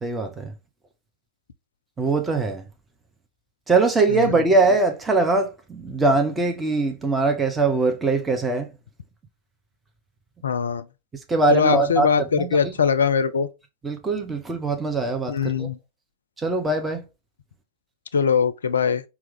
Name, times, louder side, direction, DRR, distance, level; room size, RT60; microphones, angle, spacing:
voice 1, 0.0-0.5 2.0-2.6 3.7-8.7 11.3-12.7 13.8-15.7 16.4-17.0, right 3 dB, 15° right, 0.7 m, -22 dB
voice 2, 4.1-4.4 10.4-10.9 11.5-13.5 15.3-15.8 18.1-19.0, left 6 dB, 70° left, 0.4 m, -21 dB
4.5 x 2.4 x 3.4 m
figure-of-eight pair, 90°, 0 cm